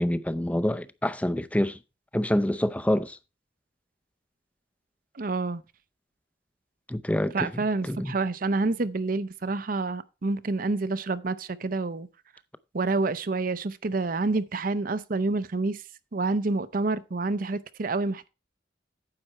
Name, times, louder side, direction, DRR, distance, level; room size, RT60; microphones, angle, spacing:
voice 1, 0.0-1.8 2.1-3.2 6.9-7.5 7.8-8.1, left 1 dB, 10° left, 0.5 m, -26 dB
voice 2, 5.2-5.6 7.3-12.1 12.7-15.8 16.1-18.3, right 3 dB, 50° right, 0.6 m, -28 dB
9.8 x 7.6 x 4.3 m
head